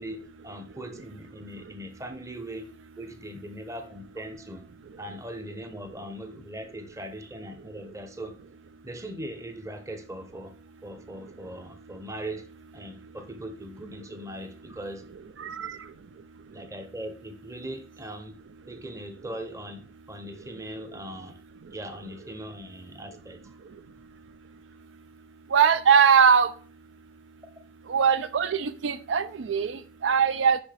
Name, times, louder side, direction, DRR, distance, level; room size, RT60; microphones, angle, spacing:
voice 1, 0.0-2.7 3.0-4.7 5.0-8.4 8.8-10.5 10.8-12.5 12.7-15.0 16.5-18.4 18.7-19.8 20.1-21.4 21.7-23.5, right 1 dB, 15° right, 0.7 m, -40 dB
voice 2, 15.4-15.8 25.5-26.5 27.9-30.6, right 7 dB, 80° right, 0.4 m, -21 dB
6.1 x 5.4 x 3.3 m
head